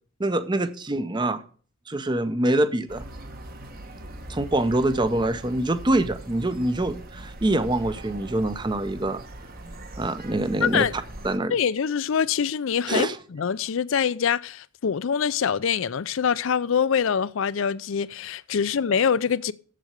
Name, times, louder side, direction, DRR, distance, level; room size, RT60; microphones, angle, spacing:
voice 1, 0.2-1.4 1.9-3.0 4.3-9.2 10.0-10.9 11.2-11.5 12.9-13.2, right 1 dB, 20° right, 0.6 m, -25 dB
sound 1, 2.9-11.4, right 1 dB, 40° right, 1.1 m, -41 dB
voice 2, 10.6-10.9 11.5-19.5, left 7 dB, 65° left, 0.4 m, -24 dB
7.7 x 7.5 x 6.7 m
head